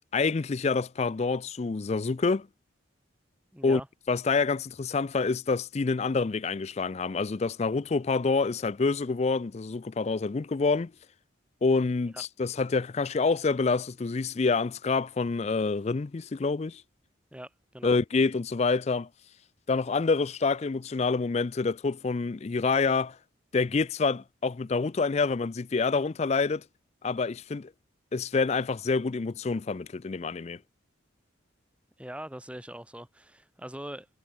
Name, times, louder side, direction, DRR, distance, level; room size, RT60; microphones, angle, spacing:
voice 1, 0.1-2.5 3.6-3.8 4.1-10.9 11.6-16.8 17.8-19.1 19.7-23.2 23.5-26.6 27.0-27.7 28.1-30.6, left 4 dB, 35° left, 0.4 m, -27 dB
voice 2, 3.5-3.9 12.1-12.3 17.3-18.0 32.0-34.1, right 1 dB, 5° right, 1.6 m, -42 dB
head